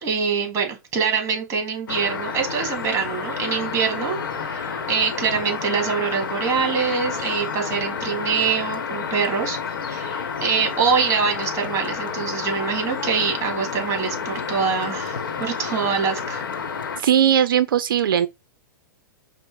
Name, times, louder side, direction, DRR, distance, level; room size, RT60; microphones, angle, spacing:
voice 1, 0.0-9.6 9.9-16.4, right 6 dB, 25° right, 1.9 m, -24 dB
sound 1, 1.9-17.0, left 6 dB, 80° left, 0.9 m, -30 dB
voice 2, 17.0-18.3, right 9 dB, 80° right, 0.4 m, -18 dB
5.1 x 2.0 x 4.6 m
hypercardioid pair, 130°, 11 cm